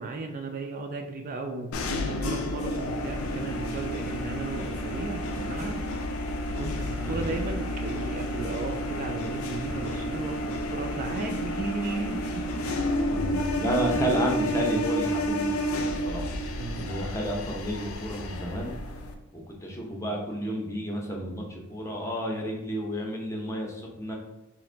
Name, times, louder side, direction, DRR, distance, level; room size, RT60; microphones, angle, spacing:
voice 1, 0.0-1.8 2.1-5.9 6.5-12.5 13.4-13.5 13.9-14.0 16.6-16.9, right 3 dB, 35° right, 3 dB, 0.3 m, -35 dB
sound 1, 1.7-19.1, left 1 dB, 70° left, 0.5 m, -31 dB
voice 2, 7.0-7.3 13.1-16.3 16.8-18.8 19.3-24.1, equal, 15° left, -1 dB, 0.6 m, -31 dB
2.9 x 2.5 x 4.3 m, 1.0 s
head